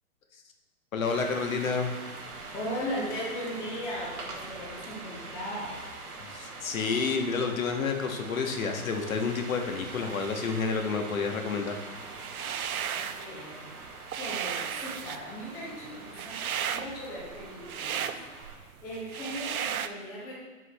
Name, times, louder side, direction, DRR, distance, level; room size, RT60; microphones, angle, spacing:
voice 1, 0.9-1.9 6.2-11.8, left 5 dB, 65° left, 4 dB, 1.1 m, -29 dB
sound 1, 1.0-18.6, right 3 dB, 90° right, 1.3 m, -44 dB
voice 2, 2.5-5.8 12.9-13.8 14.1-18.1 18.5-20.4, equal, 5° left, -5 dB, 0.5 m, -38 dB
sound 2, 12.1-13.3 13.7-19.9, right 8 dB, 70° right, 0.6 m, -34 dB
7.9 x 7.3 x 2.3 m, 1.4 s
figure-of-eight pair, 130°, 44 cm